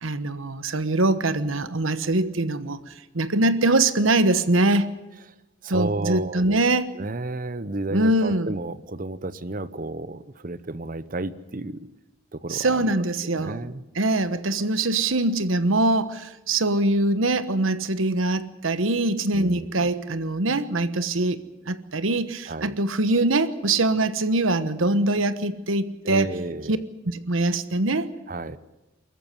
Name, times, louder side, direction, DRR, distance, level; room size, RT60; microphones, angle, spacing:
voice 1, 0.0-4.9 5.7-6.9 7.9-8.5 12.5-13.6 14.0-26.3 26.7-26.8 27.0-28.1, right 2 dB, 85° right, 13 dB, 1.2 m, -23 dB
voice 2, 5.6-6.6 6.9-11.9 12.3-13.0 13.3-13.8 19.3-19.9 22.5-22.8 26.0-26.8 28.3-28.6, right 2 dB, 45° right, 15 dB, 0.8 m, -32 dB
23.5 x 14.5 x 9.7 m, 0.99 s
head